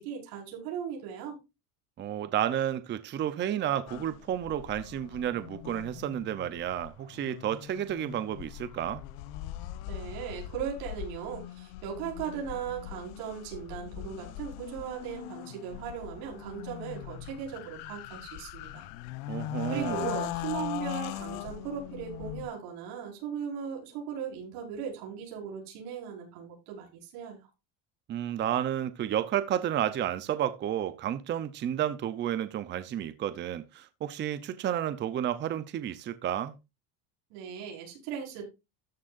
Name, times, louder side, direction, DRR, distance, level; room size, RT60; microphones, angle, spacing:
voice 1, 0.0-1.4 9.9-18.9 19.7-27.5 37.3-38.5, right 8 dB, 75° right, 5.3 m, -38 dB
voice 2, 2.0-9.0 19.3-20.1 28.1-36.6, right 10 dB, 25° right, 0.7 m, -31 dB
sound 1, 3.9-22.5, left 14 dB, 65° left, 1.0 m, -40 dB
13.5 x 9.6 x 2.5 m
cardioid pair, 160°, 43 cm